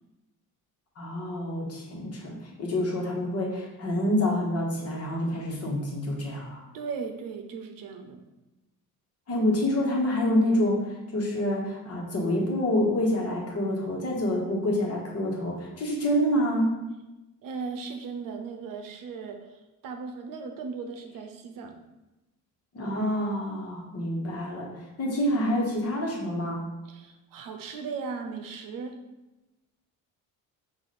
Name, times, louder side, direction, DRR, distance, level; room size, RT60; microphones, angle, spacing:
voice 1, 1.0-6.6 9.3-10.8 11.1-16.8 22.7-24.7 25.0-26.7, left 1 dB, 40° left, -1 dB, 1.3 m, -27 dB
voice 2, 6.7-8.2 17.4-21.8 26.9-29.0, right 5 dB, 65° right, 4 dB, 0.7 m, -37 dB
4.8 x 2.6 x 4.2 m, 1.0 s
cardioid pair, 100°, 36 cm